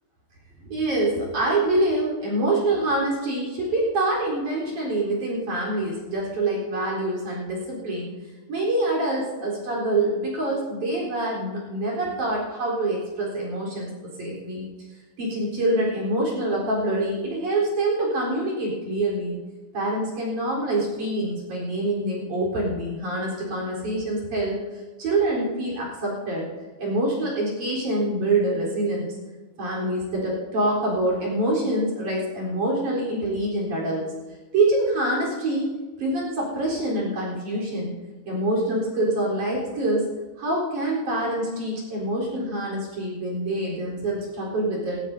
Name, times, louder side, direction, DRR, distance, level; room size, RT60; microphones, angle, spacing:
voice 1, 0.6-8.1 8.5-14.6 15.2-19.4 19.7-24.6 25.0-26.5 26.8-29.1 29.6-34.1 34.5-35.7 36.0-38.0 38.3-40.1 40.4-45.0, right 1 dB, 50° right, -4 dB, 5.3 m, -25 dB
19.5 x 17.5 x 2.7 m, 1.2 s
omnidirectional pair, 4.6 m